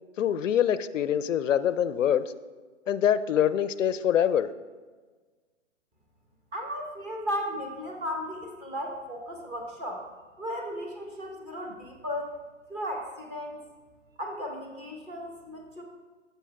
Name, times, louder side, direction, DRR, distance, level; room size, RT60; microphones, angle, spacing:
voice 1, 0.2-2.3 2.9-4.5, left 9 dB, 80° left, 15 dB, 0.5 m, -24 dB
voice 2, 6.5-10.0 10.4-12.4 12.7-13.6 14.2-15.8, equal, 15° right, 2 dB, 1.0 m, -35 dB
13.0 x 7.0 x 2.3 m, 1.4 s
hypercardioid pair, 130°, 38 cm